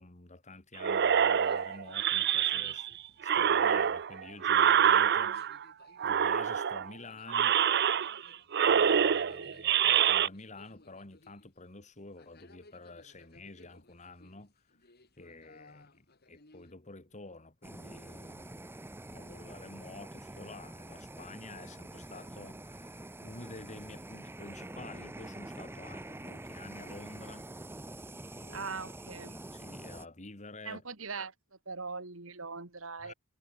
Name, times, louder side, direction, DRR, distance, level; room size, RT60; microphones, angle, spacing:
voice 1, 0.0-2.9 3.2-5.4 6.0-7.6 8.6-14.5 15.2-18.7 19.1-27.5 28.3-28.7 29.5-30.8 33.0-33.1, left 2 dB, 35° left, 2.6 m, -49 dB
sound 1, 0.8-2.9 3.2-5.6 6.0-6.9 7.3-8.3 8.5-10.3, right 8 dB, 55° right, 0.6 m, -26 dB
sound 2, 1.3-16.7, left 2 dB, 50° left, 4.2 m, -62 dB
Fire, 17.6-30.1, right 1 dB, 10° right, 0.7 m, -46 dB
voice 2, 28.5-29.4 30.6-31.3 31.7-33.1, right 4 dB, 75° right, 2.9 m, -41 dB
head